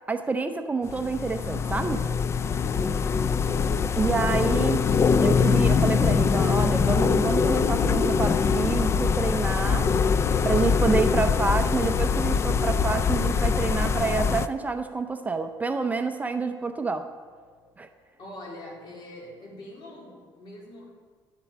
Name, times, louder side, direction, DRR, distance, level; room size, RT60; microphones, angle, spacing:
voice 1, 0.1-2.0 4.0-4.8 5.2-9.9 10.4-17.1 17.8-17.9, right 4 dB, 20° right, 7 dB, 0.6 m, -28 dB
sound 1, 0.9-14.5, left 5 dB, 30° left, 0.4 m, -23 dB
sound 2, 6.2-18.3, left 1 dB, 80° left, 3.7 m, -54 dB
voice 2, 18.2-20.9, left 1 dB, 60° left, -3 dB, 3.9 m, -44 dB
11.5 x 7.5 x 7.3 m, 1.6 s
cardioid pair, 135°, 9 cm